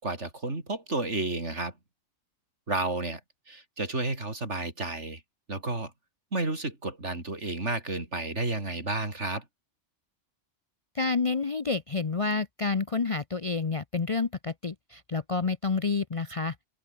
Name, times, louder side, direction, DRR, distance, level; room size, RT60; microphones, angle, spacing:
voice 1, 0.0-1.7 2.7-3.2 3.5-5.2 5.5-5.9 6.3-9.4, right 2 dB, 65° right, 4.8 m, -31 dB
voice 2, 10.9-16.5, left 4 dB, 35° left, 0.7 m, -29 dB
omnidirectional pair, 1.3 m